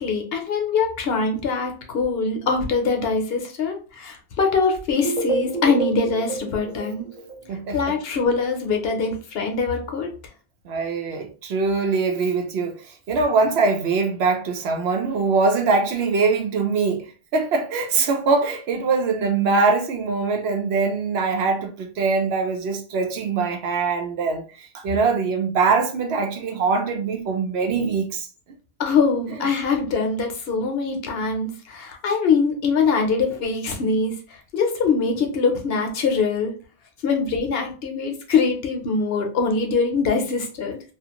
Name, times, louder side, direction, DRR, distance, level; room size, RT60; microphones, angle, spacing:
voice 1, 0.0-7.1 7.7-10.1 28.8-34.1 34.5-36.5 37.0-40.8, left 4 dB, 65° left, 0.9 m, -23 dB
sound 1, 4.9-7.9, right 2 dB, 40° right, 1.1 m, -29 dB
voice 2, 7.5-8.0 10.7-12.8 13.1-28.3 29.4-29.5, right 4 dB, 70° right, 0.8 m, -22 dB
2.4 x 2.4 x 2.8 m
omnidirectional pair, 1.1 m